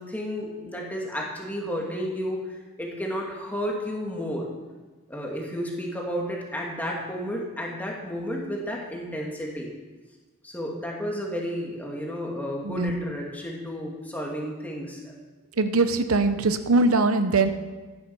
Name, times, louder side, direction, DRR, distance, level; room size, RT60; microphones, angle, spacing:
voice 1, 0.0-4.5 5.1-9.7 10.4-15.1 17.4-17.5, equal, 10° left, -2 dB, 2.4 m, -32 dB
voice 2, 12.6-13.0 15.6-17.5, right 3 dB, 90° right, 10 dB, 0.8 m, -22 dB
14.5 x 10.5 x 5.6 m, 1.3 s
head